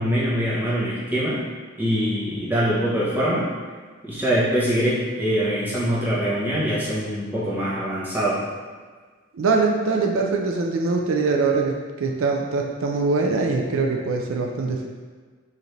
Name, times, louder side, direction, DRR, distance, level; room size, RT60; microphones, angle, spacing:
voice 1, 0.0-1.4 1.8-3.5 4.1-8.4, equal, 10° right, -9 dB, 0.9 m, -23 dB
voice 2, 9.3-14.9, right 3 dB, 80° right, 1 dB, 0.4 m, -23 dB
5.0 x 2.6 x 3.2 m, 1.5 s
head